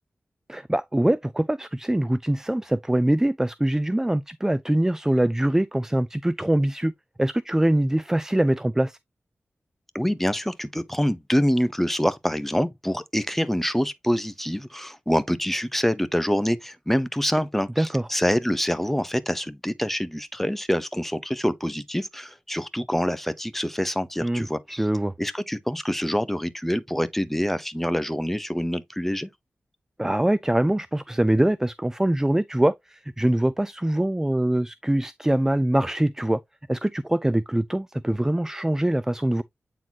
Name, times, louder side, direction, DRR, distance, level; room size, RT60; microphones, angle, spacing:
voice 1, 0.5-6.9 7.2-9.0 17.8-18.1 24.2-24.4 24.8-25.1 30.0-36.4 36.7-39.4, right 1 dB, 10° right, 0.3 m, -23 dB
voice 2, 9.9-24.9 25.2-29.3, equal, 5° left, 0.8 m, -26 dB
8.9 x 4.0 x 2.8 m
wide cardioid pair, 75°, 4 cm